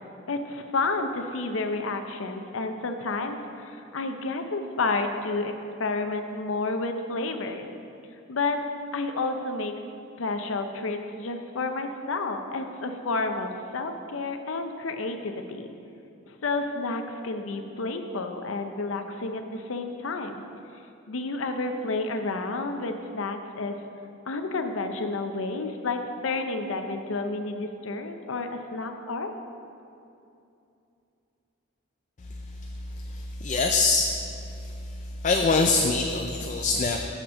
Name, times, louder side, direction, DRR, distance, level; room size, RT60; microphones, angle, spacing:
voice 1, 0.3-5.5 5.8-7.7 8.3-8.6 8.9-9.7 10.2-15.7 16.3-20.4 21.1-23.7 24.3-29.3, left 3 dB, 90° left, 6 dB, 0.6 m, -30 dB
voice 2, 32.2-37.0, left 3 dB, 40° left, 4 dB, 0.4 m, -26 dB
6.6 x 6.1 x 7.0 m, 2.7 s
head